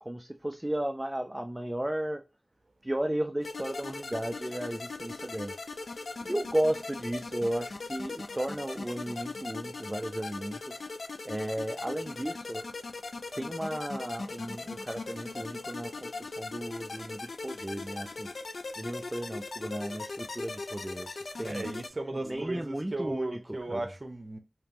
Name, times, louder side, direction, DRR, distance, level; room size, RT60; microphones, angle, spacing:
voice 1, 0.0-2.2 2.8-5.6 6.2-10.8 11.3-12.8 13.4-18.3 18.8-21.7 22.1-23.8, right 1 dB, 15° right, 0.4 m, -34 dB
sound 1, 3.4-21.9, left 3 dB, 80° left, 0.4 m, -39 dB
voice 2, 21.4-24.4, right 2 dB, 45° right, 0.7 m, -36 dB
3.4 x 2.9 x 3.0 m
wide cardioid pair, 60°, 0 cm